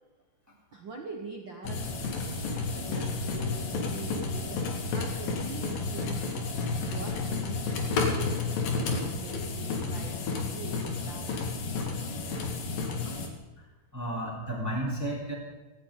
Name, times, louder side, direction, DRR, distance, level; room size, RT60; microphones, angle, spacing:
voice 1, 0.7-2.3 2.7-6.4 6.9-11.3, right 4 dB, 75° right, 1 dB, 1.1 m, -44 dB
sound 1, 1.6-13.3, left 3 dB, 70° left, 3.5 m, -31 dB
voice 2, 13.9-15.3, right 1 dB, 5° right, -3 dB, 3.2 m, -33 dB
17.5 x 16.5 x 3.9 m, 1.2 s
omnidirectional pair, 4.3 m